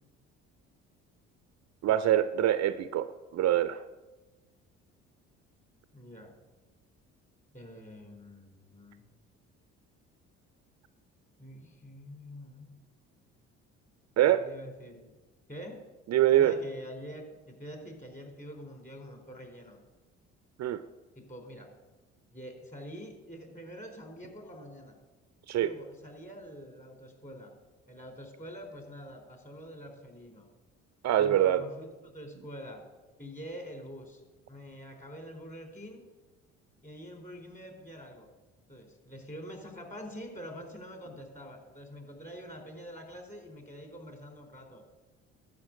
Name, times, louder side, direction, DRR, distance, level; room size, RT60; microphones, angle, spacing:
voice 1, 1.8-3.8 14.2-14.4 16.1-16.5 20.6-20.8 25.5-25.7 31.0-31.6, right 12 dB, 50° right, 13 dB, 0.6 m, -24 dB
voice 2, 5.9-6.3 7.5-9.1 11.4-12.8 14.3-15.1 15.5-15.8 16.3-19.8 21.1-21.7 22.3-25.0 25.6-27.5 27.9-30.5 31.2-32.8 33.2-34.2 34.5-36.0 36.8-38.3 38.7-44.8, equal, 20° left, 3 dB, 4.2 m, -46 dB
12.0 x 5.7 x 8.9 m, 1.1 s
hypercardioid pair, 60°, 35 cm